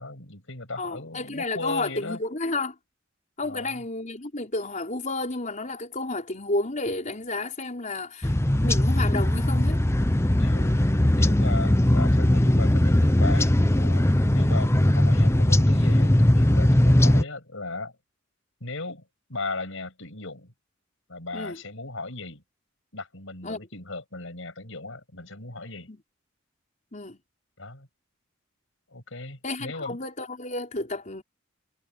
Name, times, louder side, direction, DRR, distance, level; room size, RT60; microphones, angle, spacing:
voice 1, 0.0-2.2 3.4-3.8 10.3-17.9 18.6-19.0 19.3-20.5 21.1-22.4 22.9-25.9 27.6-27.9 28.9-30.0, left 3 dB, 70° left, 7.3 m, -37 dB
voice 2, 0.8-2.7 3.4-8.3 8.6-9.8 21.3-21.6 23.4-23.6 25.9-26.0 26.9-27.2 29.4-31.2, left 2 dB, 40° left, 4.7 m, -31 dB
sound 1, 8.2-17.2, left 1 dB, 15° left, 0.7 m, -20 dB
head